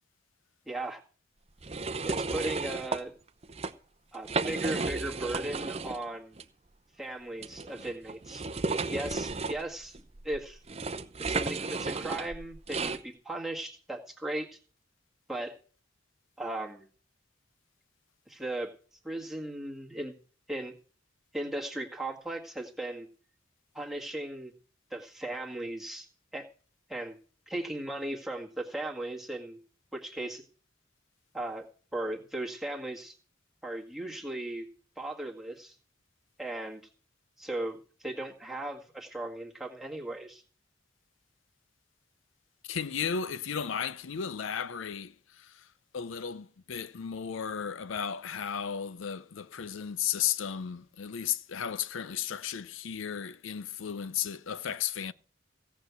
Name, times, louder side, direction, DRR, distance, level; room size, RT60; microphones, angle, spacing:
voice 1, 0.7-1.0 2.0-3.1 4.1-6.4 7.0-8.4 8.9-10.6 11.2-14.6 15.3-15.6 16.4-16.9 18.3-18.7 19.0-20.2 20.5-20.7 21.3-23.1 23.7-24.5 24.9-26.1 26.3-26.5 26.9-27.2 27.5-29.6 29.9-30.4 31.3-31.7 31.9-33.2 33.6-34.7 35.0-35.8 36.4-36.8 37.4-40.4, right 1 dB, ahead, 1.8 m, -37 dB
sound 1, 1.6-3.0 3.4-3.7 4.1-6.0 6.4-6.5 7.4-13.0, right 3 dB, 30° right, 0.7 m, -33 dB
voice 2, 42.6-45.6 45.9-55.1, left 8 dB, 75° left, 0.5 m, -34 dB
16.5 x 6.1 x 8.2 m
head